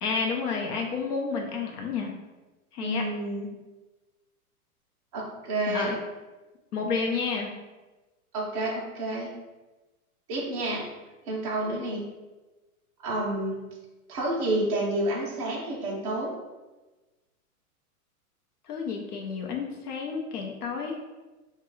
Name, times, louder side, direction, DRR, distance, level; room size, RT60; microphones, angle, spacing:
voice 1, 0.0-2.1 2.7-3.1 5.7-6.0 6.7-7.5 18.7-21.0, left 5 dB, 80° left, 0 dB, 0.6 m, -30 dB
voice 2, 2.8-3.5 5.1-5.9 8.3-9.3 10.3-10.8 11.3-12.0 13.0-13.6 14.1-16.3, right 1 dB, 25° right, -5 dB, 0.3 m, -29 dB
2.3 x 2.2 x 3.0 m, 1.2 s
hypercardioid pair, 140°, 45 cm